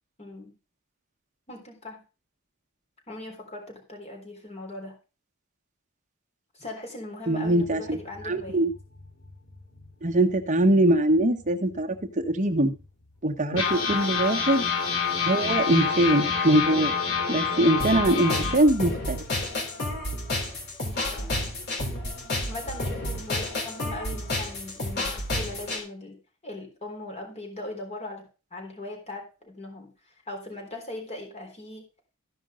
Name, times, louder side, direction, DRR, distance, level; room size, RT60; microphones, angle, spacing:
voice 1, 0.2-0.5 1.5-2.0 3.1-5.0 6.5-8.6 13.6-14.0 20.8-21.5 22.5-26.2 26.4-29.9 30.3-31.8, left 2 dB, 30° left, 1 dB, 3.7 m, -40 dB
voice 2, 7.3-8.0 8.3-8.7 10.0-12.7 13.2-14.6 15.3-16.9 17.3-19.2, right 1 dB, 35° right, 4 dB, 1.3 m, -22 dB
sound 1, 7.5-10.7 11.1-11.2 11.5-11.7 12.3-12.4 13.5-18.6, left 5 dB, 90° left, 3.8 m, -28 dB
sound 2, 17.8-25.8, left 1 dB, 55° left, 3.7 m, -31 dB
14.0 x 5.4 x 5.1 m, 0.32 s
head